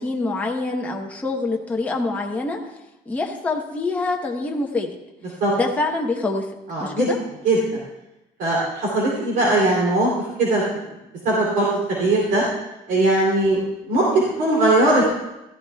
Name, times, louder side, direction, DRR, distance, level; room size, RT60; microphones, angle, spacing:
voice 1, 0.0-2.6 3.1-4.9 5.5-6.5 6.8-7.2, left 3 dB, 10° left, 0 dB, 0.9 m, -25 dB
voice 2, 6.7-7.1 7.4-7.8 8.4-10.1 10.4-10.6 11.2-11.7 12.0-12.4 12.9-13.6 13.9-15.0, right 2 dB, 60° right, -4 dB, 2.9 m, -19 dB
14.5 x 14.0 x 2.3 m, 0.95 s
cardioid pair, 175°, 16 cm